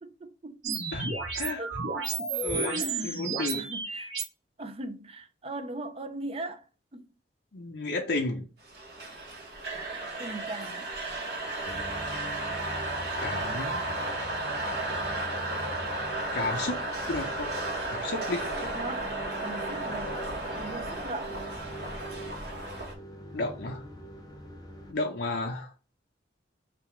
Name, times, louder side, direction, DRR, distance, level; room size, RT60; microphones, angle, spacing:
voice 1, 0.0-0.9 1.6-2.3 2.7-3.2 3.5-4.1 4.6-6.6 6.9-7.1 10.2-10.8 18.6-19.1 19.4-20.2 20.6-21.4, right 2 dB, 30° right, 0.5 m, -39 dB
sound 1, 0.6-4.2, right 4 dB, 85° right, 1.2 m, -32 dB
voice 2, 2.3-3.7 7.5-8.5 13.2-13.8 16.3-16.8 17.1-17.5 17.9-18.5 23.3-23.8 24.9-25.7, left 2 dB, 65° left, 0.7 m, -32 dB
sound 2, 8.7-22.9, right 2 dB, 60° right, 1.1 m, -34 dB
sound 3, 11.7-24.9, equal, 20° left, 0.7 m, -44 dB
3.6 x 2.4 x 4.3 m
head